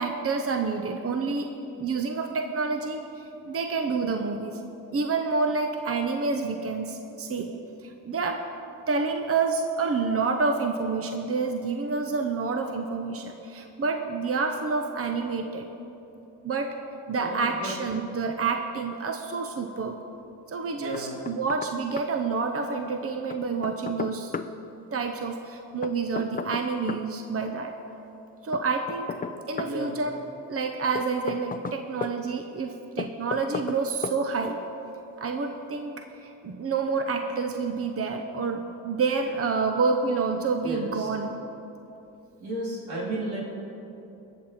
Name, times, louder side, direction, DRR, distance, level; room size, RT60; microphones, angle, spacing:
voice 1, 0.0-1.5 1.8-4.6 4.9-7.5 7.8-8.5 8.9-15.7 16.4-16.8 17.1-20.0 20.5-24.3 24.9-27.7 28.4-29.1 29.5-30.2 30.5-34.6 35.2-35.9 36.2-41.3, right 4 dB, 40° right, 5 dB, 0.9 m, -28 dB
voice 2, 17.2-17.7 20.7-21.2 29.6-29.9 40.6-41.1 42.4-43.4, right 2 dB, 85° right, -5 dB, 3.1 m, -33 dB
Knock, 20.9-21.7 22.0-22.1 23.3-24.5 25.8-27.1 28.5-29.8 31.0-32.2 33.0-33.8 34.0-34.2, left 5 dB, 25° left, 0.5 m, -34 dB
20.0 x 7.1 x 4.3 m, 2.9 s
cardioid pair, 60°, 37 cm